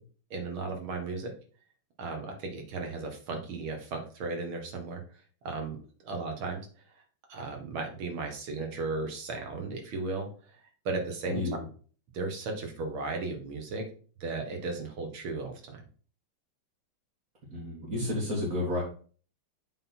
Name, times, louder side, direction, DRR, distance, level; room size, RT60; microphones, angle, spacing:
voice 1, 0.3-1.3 2.0-5.0 5.4-5.8 6.0-6.6 7.3-10.6 10.9-11.4 12.1-13.8 14.2-15.9, right 3 dB, 90° right, 3 dB, 2.3 m, -35 dB
voice 2, 17.5-18.8, left 1 dB, 45° right, -7 dB, 2.5 m, -31 dB
7.6 x 4.2 x 4.3 m, 0.42 s
omnidirectional pair, 2.2 m